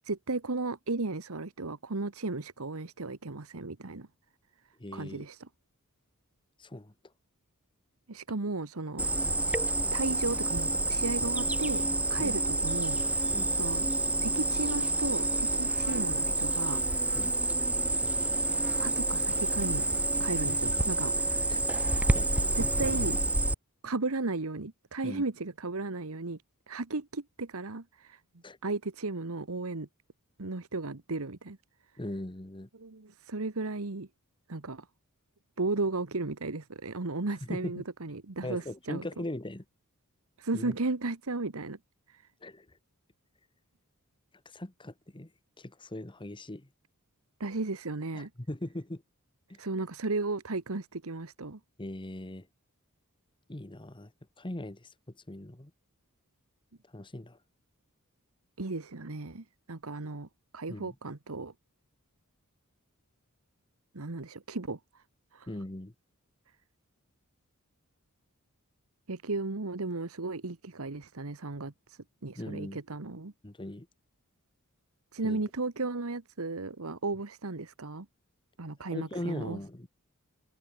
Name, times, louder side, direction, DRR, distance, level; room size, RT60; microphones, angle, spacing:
voice 1, 0.0-4.1 4.9-5.5 8.1-9.1 9.5-9.6 9.9-13.3 13.6-13.9 14.2-17.1 17.4-17.5 18.8-19.8 20.2-21.5 22.5-23.2 23.8-26.4 26.7-28.2 28.6-29.9 30.4-31.6 32.7-34.1 34.5-34.9 35.6-39.0 40.4-41.8 42.1-42.2 47.4-48.3 49.6-51.6 58.6-61.5 63.9-65.0 65.3-65.5 69.1-73.3 75.1-78.1 78.6-79.6, right 3 dB, 70° right, 1.3 m, -35 dB
voice 2, 4.8-5.3 6.6-6.9 12.2-12.3 13.3-13.5 17.1-17.3 21.5-21.6 22.1-22.5 25.0-25.2 28.4-28.6 32.0-32.7 37.5-37.8 38.4-39.6 40.5-40.7 42.4-42.7 44.4-45.3 45.6-46.7 48.1-49.0 49.5-49.6 51.8-52.5 53.5-54.1 54.4-54.9 55.3-55.7 56.9-57.4 60.7-60.9 65.5-65.9 72.3-72.8 73.4-73.9 75.2-75.4 78.9-79.9, left 1 dB, 20° left, 1.3 m, -39 dB
Cricket, 9.0-23.5, right 2 dB, 5° right, 0.9 m, -28 dB
head